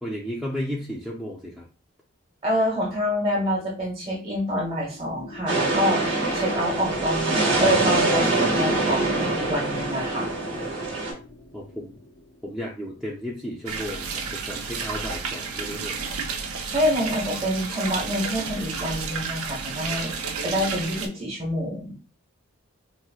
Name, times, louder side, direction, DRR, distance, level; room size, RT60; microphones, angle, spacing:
voice 1, 0.0-1.7 11.5-12.0 12.4-16.0, equal, ahead, -5 dB, 0.4 m, -34 dB
voice 2, 2.4-10.3 16.7-21.9, equal, 25° right, -2 dB, 1.1 m, -27 dB
sound 1, 4.8-13.2, left 1 dB, 50° left, 0.5 m, -40 dB
sound 2, 5.5-11.1, right 2 dB, 55° right, 1.1 m, -24 dB
sound 3, 13.7-21.1, right 5 dB, 85° right, 0.6 m, -31 dB
4.1 x 2.0 x 2.3 m, 0.33 s
head